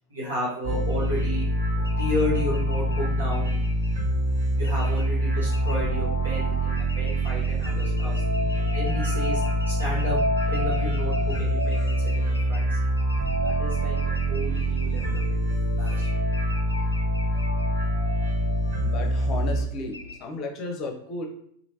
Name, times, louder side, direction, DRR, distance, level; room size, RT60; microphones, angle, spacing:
voice 1, 0.1-1.5 2.0-3.6 4.6-8.1 8.6-9.4 9.7-10.2 10.5-12.8 13.4-14.0 14.3-15.2 15.8-16.1, left 1 dB, 75° right, -8 dB, 1.1 m, -32 dB
sound 1, 0.6-19.6, right 1 dB, 50° right, 1.3 m, -25 dB
sound 2, 0.9-20.2, left 2 dB, 80° left, 0.4 m, -44 dB
voice 2, 18.8-21.3, left 3 dB, 35° left, 3 dB, 0.6 m, -34 dB
3.1 x 2.5 x 2.7 m, 0.68 s
figure-of-eight pair, 90°, 0 cm